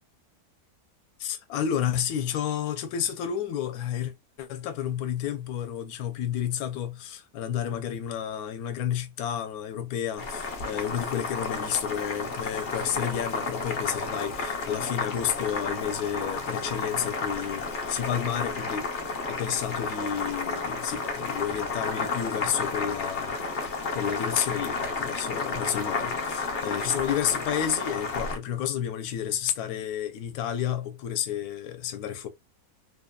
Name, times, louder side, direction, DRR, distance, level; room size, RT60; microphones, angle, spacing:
voice 1, 1.2-4.1 4.4-18.9 19.3-23.4 23.6-32.3, left 9 dB, 80° left, 1.1 m, -31 dB
Boiling, 10.2-28.4, left 4 dB, 50° left, 0.6 m, -32 dB
2.9 x 2.2 x 2.2 m
omnidirectional pair, 1.6 m